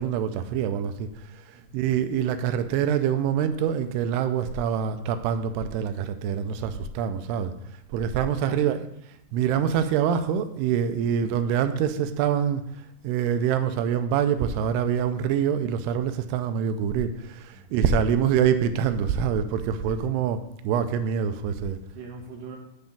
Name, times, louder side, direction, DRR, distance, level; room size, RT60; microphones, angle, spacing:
voice 1, 0.0-7.5 7.9-8.9 9.3-12.7 13.0-21.8, right 8 dB, 85° right, 9 dB, 2.7 m, -25 dB
voice 2, 8.4-8.8 11.0-11.2 17.5-17.8 19.9-20.2 21.9-22.6, right 4 dB, 65° right, 1 dB, 2.5 m, -42 dB
9.7 x 3.9 x 7.1 m, 0.77 s
omnidirectional pair, 4.6 m